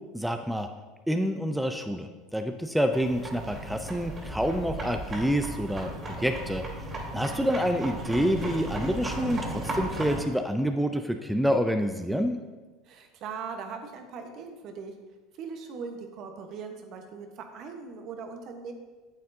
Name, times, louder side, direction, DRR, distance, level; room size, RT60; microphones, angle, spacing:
voice 1, 0.1-0.7 1.1-5.9 6.2-6.6 7.1-12.4, equal, 5° right, 6 dB, 0.5 m, -27 dB
sound 1, 2.9-10.2, right 1 dB, 30° right, 2.4 m, -35 dB
voice 2, 12.8-14.9 15.4-18.7, right 5 dB, 55° right, 5 dB, 1.1 m, -40 dB
9.1 x 7.5 x 2.7 m, 1.3 s
hypercardioid pair, 85°, 0 cm